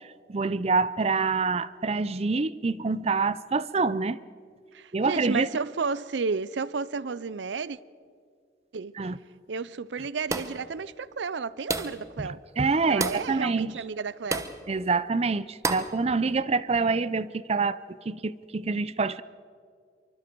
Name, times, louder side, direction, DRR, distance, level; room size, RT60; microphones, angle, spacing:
voice 1, 0.3-4.2 4.9-5.5 9.0-9.2 12.2-13.7 14.7-17.8 18.1-19.2, right 4 dB, 35° right, 0.5 m, -26 dB
voice 2, 4.7-7.8 8.7-9.0 9.5-12.4 12.8-14.5, right 4 dB, 85° right, 0.6 m, -32 dB
sound 1, 10.3-10.7 11.7-12.1 13.0-13.3 14.3-14.6 15.6-16.0, right 3 dB, 20° right, 0.9 m, -30 dB
25.5 x 24.0 x 4.6 m
head